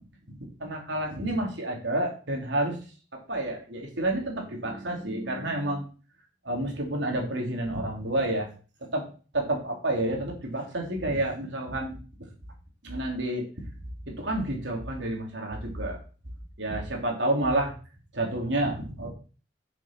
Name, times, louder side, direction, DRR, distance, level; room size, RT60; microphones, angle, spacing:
voice 1, 0.3-2.8 3.1-5.8 6.4-8.5 8.8-9.1 9.3-12.0 12.8-13.5 14.1-16.0 16.6-17.7 18.1-19.1, right 1 dB, 75° right, 0 dB, 3.3 m, -29 dB
7.5 x 7.0 x 5.9 m, 0.37 s
head